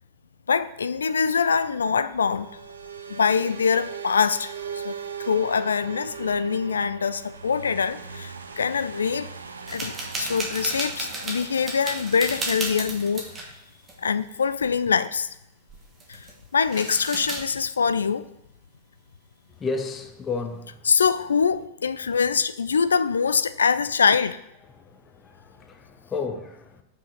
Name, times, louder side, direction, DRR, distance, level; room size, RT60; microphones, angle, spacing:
voice 1, 0.5-2.5 3.1-9.3 9.7-13.2 14.0-15.3 16.1-18.3 20.9-24.4, left 6 dB, 70° left, 0.3 m, -24 dB
sound 1, 1.1-13.5, right 6 dB, 75° right, 0.5 m, -40 dB
sound 2, 9.7-13.5 13.8-14.0 14.3-14.6 15.7-16.4 16.6-17.4, right 2 dB, 20° right, 1.6 m, -33 dB
voice 2, 19.6-20.9 24.7-26.8, left 4 dB, 20° left, 0.7 m, -33 dB
5.5 x 4.9 x 5.0 m
figure-of-eight pair, 90°, 0 cm